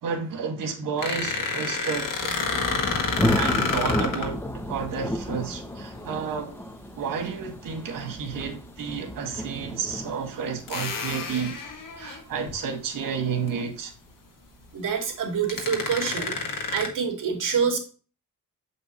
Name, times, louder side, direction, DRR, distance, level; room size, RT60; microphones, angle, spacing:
voice 1, 0.0-2.3 3.2-6.6 7.0-11.6 12.0-13.9, right 6 dB, 90° right, 1.8 m, -31 dB
sound 1, 1.0-4.3 6.4-6.6 8.3-8.4 9.3-9.4 10.7-12.5 13.0-13.2 13.5-13.6 15.1-15.2 15.5-16.9, left 4 dB, 75° left, 1.8 m, -29 dB
Thunder, 1.9-13.4, equal, 5° left, 0.8 m, -33 dB
voice 2, 14.7-16.4 16.7-17.8, right 6 dB, 70° right, 2.3 m, -26 dB
8.2 x 5.4 x 3.0 m
cardioid pair, 105°, 33 cm